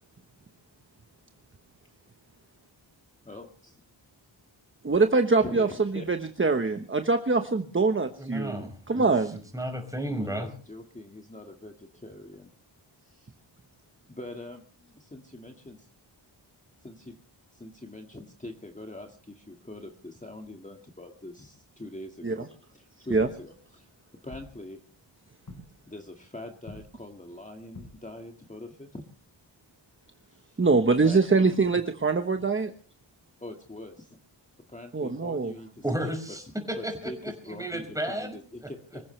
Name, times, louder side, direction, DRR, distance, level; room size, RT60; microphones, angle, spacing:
voice 1, 3.2-3.8 5.4-6.1 10.1-12.5 13.0-13.3 14.1-14.6 15.1-15.8 16.8-17.1 17.5-22.5 22.7-23.9 24.2-24.8 25.9-29.0 30.3-30.6 31.0-31.5 33.4-34.2 34.7-36.1 36.8-39.0, left 1 dB, 15° left, 3 dB, 1.9 m, -43 dB
voice 2, 4.8-9.4 22.2-22.5 23.1-23.3 30.6-32.7 34.9-35.5, right 3 dB, 25° right, 7 dB, 1.2 m, -24 dB
voice 3, 8.2-9.1 9.5-10.5 35.8-38.4 38.6-38.7, right 1 dB, 5° right, 4 dB, 5.4 m, -33 dB
sound 1, 23.1-23.9 24.3-25.0 25.5-26.0 26.6-27.2 27.7-28.4 29.5-29.7 31.7-31.8, left 2 dB, 40° left, 4.2 m, -48 dB
25.5 x 15.0 x 3.3 m, 0.42 s
wide cardioid pair, 120°, 46 cm